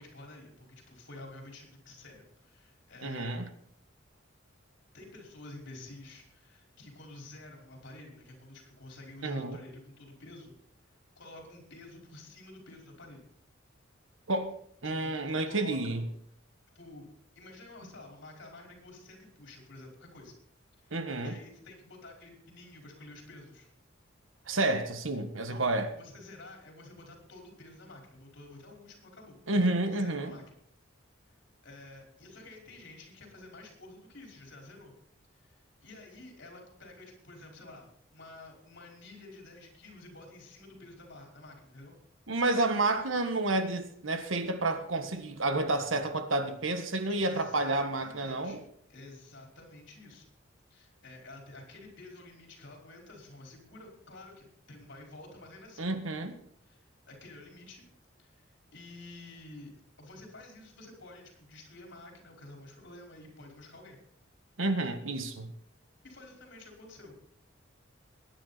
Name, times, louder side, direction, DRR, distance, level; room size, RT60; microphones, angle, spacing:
voice 1, 0.0-3.4 4.9-10.5 11.2-13.3 14.8-16.0 16.7-17.1 17.3-20.3 20.8-23.7 25.5-25.6 25.9-29.4 29.9-30.6 31.6-34.9 35.3-42.0 47.1-48.6 48.9-50.3 50.7-55.9 56.7-57.9 58.2-59.7 60.0-64.0 66.0-67.2, left 2 dB, 65° left, 5.0 m, -50 dB
voice 2, 3.0-3.5 9.2-9.6 14.3-14.5 14.8-16.0 20.9-21.3 24.5-25.9 29.5-30.3 42.3-48.6 55.8-56.4 64.6-65.5, right 2 dB, 90° right, 1.6 m, -30 dB
22.0 x 9.9 x 4.2 m
head